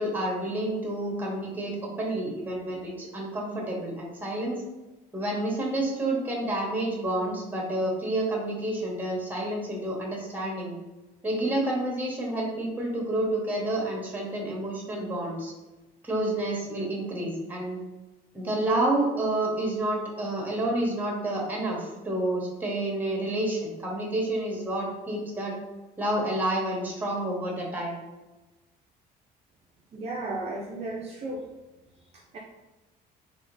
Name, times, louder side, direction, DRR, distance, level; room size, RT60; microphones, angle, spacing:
voice 1, 0.0-4.6 5.1-10.8 11.2-15.5 16.0-17.8 18.3-25.6 26.0-28.0, right 1 dB, 10° right, -2 dB, 1.1 m, -29 dB
voice 2, 29.9-31.4 32.3-32.4, right 2 dB, 40° right, -1 dB, 0.5 m, -34 dB
3.6 x 2.9 x 2.6 m, 1.1 s
cardioid pair, 110°, 17 cm